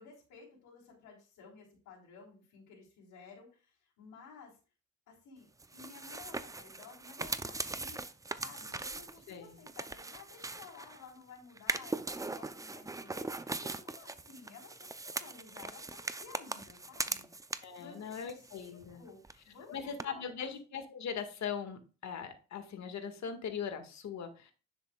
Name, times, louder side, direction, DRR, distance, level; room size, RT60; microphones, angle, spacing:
voice 1, 0.0-4.6 5.1-8.0 8.3-20.5, left 5 dB, 85° left, -7 dB, 4.0 m, -54 dB
sound 1, 5.6-11.1 11.6-17.8 18.1-19.0 19.2-19.3 20.0-20.1, right 3 dB, 10° right, 0.5 m, -40 dB
voice 2, 17.6-19.0 19.7-24.5, left 7 dB, 65° left, 6 dB, 1.8 m, -40 dB
10.0 x 7.4 x 2.3 m, 0.35 s
cardioid pair, 90°, 30 cm